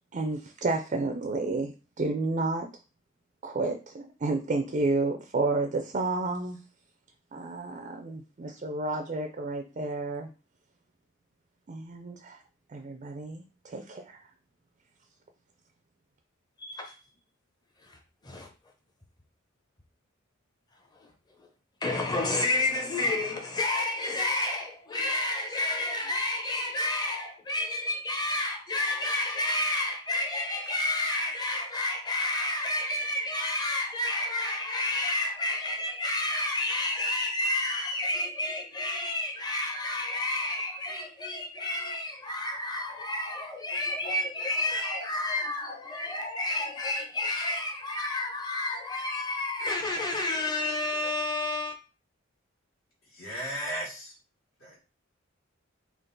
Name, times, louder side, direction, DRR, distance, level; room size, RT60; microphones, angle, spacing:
voice 1, 0.1-2.7 3.4-6.6 7.3-10.3 11.7-12.4 12.7-14.2, right 3 dB, 35° right, 0.4 m, -31 dB
voice 2, 16.6-17.0 17.8-18.0 18.2-18.5 21.0-21.1 21.8-51.8, left 2 dB, 20° left, 0.7 m, -30 dB
voice 3, 53.1-54.1 54.6-54.8, equal, 70° left, 1.9 m, -35 dB
3.6 x 2.4 x 3.8 m
head